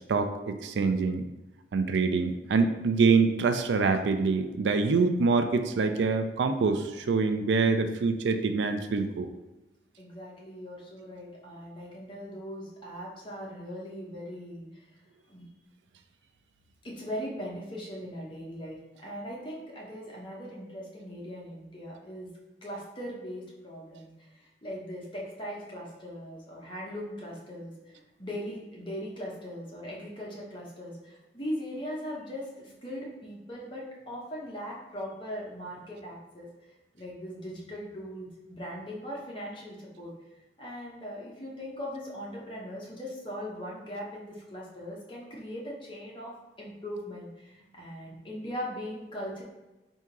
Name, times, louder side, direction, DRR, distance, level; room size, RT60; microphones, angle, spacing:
voice 1, 0.1-1.3 1.7-9.3, right 4 dB, 80° right, 8 dB, 0.4 m, -25 dB
voice 2, 10.0-14.7 15.3-15.5 16.8-22.3 22.6-24.1 24.6-27.7 28.2-36.5 36.9-40.1 40.6-46.3 46.6-49.4, equal, 30° left, -4 dB, 1.0 m, -39 dB
3.5 x 2.8 x 4.5 m, 1.1 s
head